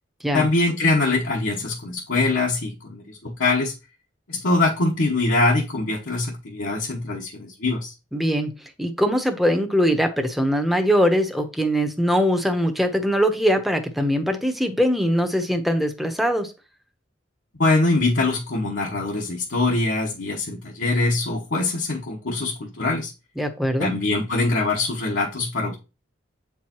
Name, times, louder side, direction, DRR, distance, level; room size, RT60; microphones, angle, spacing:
voice 1, 0.3-3.7 4.3-7.9 17.6-23.1 23.8-25.7, left 2 dB, 75° left, 1.1 m, -23 dB
voice 2, 8.1-16.5 23.4-23.9, equal, ahead, 0.8 m, -22 dB
8.0 x 4.7 x 2.9 m
head